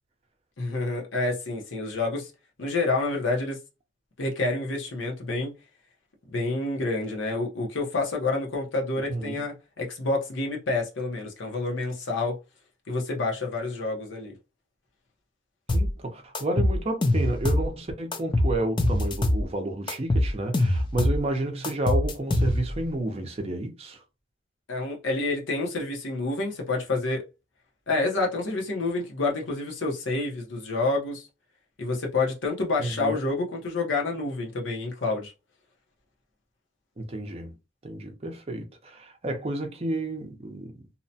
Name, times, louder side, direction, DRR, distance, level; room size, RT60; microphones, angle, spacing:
voice 1, 0.6-2.3 2.6-3.6 4.2-5.5 6.3-12.4 12.9-14.3 24.7-27.2 27.9-31.3 31.8-35.3, left 3 dB, 80° left, 0.8 m, -28 dB
voice 2, 9.1-9.4 15.7-24.0 32.8-33.2 37.0-37.5 37.8-40.7, right 1 dB, 30° right, 0.5 m, -31 dB
sound 1, 15.7-15.9 16.3-17.7 18.1-19.5 19.9-21.2 21.6-22.8, left 1 dB, 25° left, 0.3 m, -24 dB
2.8 x 2.1 x 2.7 m
head